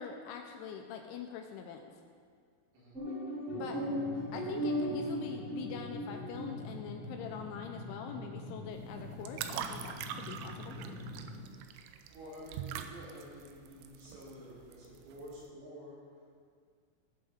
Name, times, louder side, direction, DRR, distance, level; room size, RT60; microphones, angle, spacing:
voice 1, 0.0-1.9 3.5-3.8 4.3-10.8, left 7 dB, 80° left, 3 dB, 2.9 m, -44 dB
sound 1, 2.9-6.6, equal, 25° left, 1.8 m, -36 dB
sound 2, 3.5-11.4, left 1 dB, 45° left, 1.5 m, -45 dB
voice 2, 3.6-3.9 10.5-11.1 12.1-16.0, equal, 75° right, -9 dB, 5.9 m, -50 dB
sound 3, 8.7-15.5, right 9 dB, 90° right, 3.3 m, -44 dB
17.5 x 8.2 x 3.6 m, 2.1 s
omnidirectional pair, 5.9 m